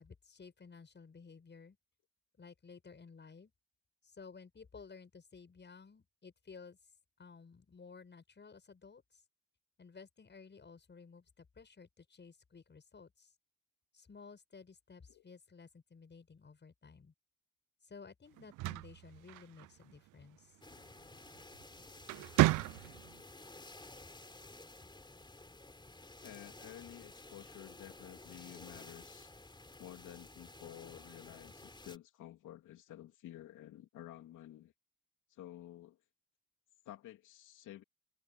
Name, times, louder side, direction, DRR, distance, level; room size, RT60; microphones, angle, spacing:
voice 1, 0.0-1.8 2.4-3.5 4.0-6.8 7.2-9.2 9.8-13.3 13.9-17.1 17.8-20.6, left 5 dB, 35° left, 7.8 m, -55 dB
sound 1, 18.4-19.9 21.4-21.6 22.0-23.2, right 19 dB, 80° right, 0.5 m, -32 dB
sound 2, 20.6-32.0, left 2 dB, 15° left, 4.3 m, -53 dB
voice 2, 26.2-29.3 29.8-34.7 35.3-36.0 36.8-37.8, left 13 dB, 85° left, 3.0 m, -52 dB
cardioid pair, 90°, 30 cm